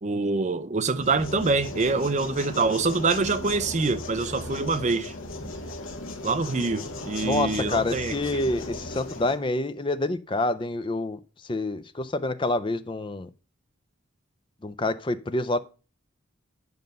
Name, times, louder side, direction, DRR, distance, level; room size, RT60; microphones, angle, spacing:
voice 1, 0.0-5.1 6.2-8.4, right 3 dB, 35° right, 0.5 m, -25 dB
sound 1, 0.9-9.4, left 2 dB, 70° left, 1.4 m, -37 dB
voice 2, 7.2-13.3 14.6-15.6, left 2 dB, 25° left, 0.4 m, -27 dB
9.5 x 5.3 x 5.2 m
head